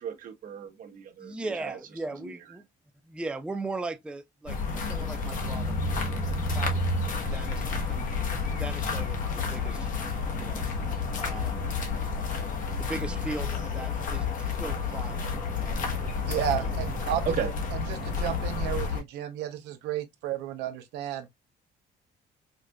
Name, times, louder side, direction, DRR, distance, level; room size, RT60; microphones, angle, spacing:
voice 1, 0.0-1.8 17.2-17.5, right 8 dB, 55° right, 1.1 m, -34 dB
voice 2, 1.2-2.6 3.0-6.8 7.3-8.1 8.6-9.9 10.3-10.6 11.2-11.7 12.8-15.8 16.5-16.8, right 2 dB, 5° right, 0.4 m, -39 dB
sound 1, 4.5-19.0, left 4 dB, 50° left, 1.2 m, -30 dB
voice 3, 16.3-17.2 17.7-21.3, right 11 dB, 85° right, 0.7 m, -32 dB
4.9 x 2.5 x 2.2 m
cardioid pair, 110°, 17 cm